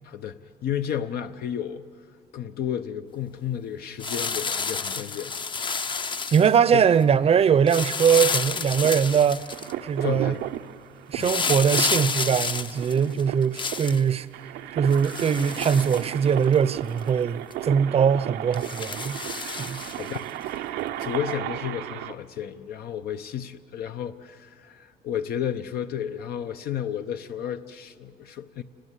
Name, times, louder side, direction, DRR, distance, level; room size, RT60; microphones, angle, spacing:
voice 1, 0.0-1.9 2.3-5.3 6.7-6.8 10.0-10.4 11.2-11.3 19.5-20.6 21.0-28.6, left 9 dB, 65° left, 0.7 m, -32 dB
sound 1, 4.0-6.6 7.7-9.7 11.2-14.0 14.9-16.5 17.0-17.1 17.5-17.6 18.5-20.2 21.0-21.1, left 5 dB, 30° left, 0.7 m, -30 dB
voice 2, 6.3-9.4 9.8-10.4 11.1-14.3 14.7-19.2 19.6-19.8, right 7 dB, 35° right, 0.6 m, -21 dB
sound 2, 8.8-22.1, right 12 dB, 85° right, 0.7 m, -35 dB
28.5 x 19.5 x 8.3 m
cardioid pair, 110°, 17 cm